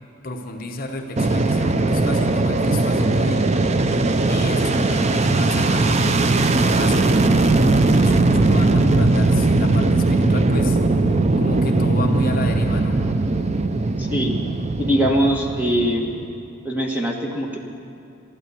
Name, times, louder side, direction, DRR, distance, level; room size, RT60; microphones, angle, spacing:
voice 1, 0.2-3.5 4.3-7.4 7.9-11.1 11.4-13.1, left 2 dB, 40° left, 3 dB, 0.9 m, -31 dB
Fixed-wing aircraft airplane, 1.2-16.3, right 2 dB, 30° right, 0.5 m, -19 dB
voice 2, 14.0-14.3 14.8-16.0 16.6-17.6, equal, 10° right, 0 dB, 1.4 m, -21 dB
12.5 x 12.0 x 8.3 m, 2.6 s
head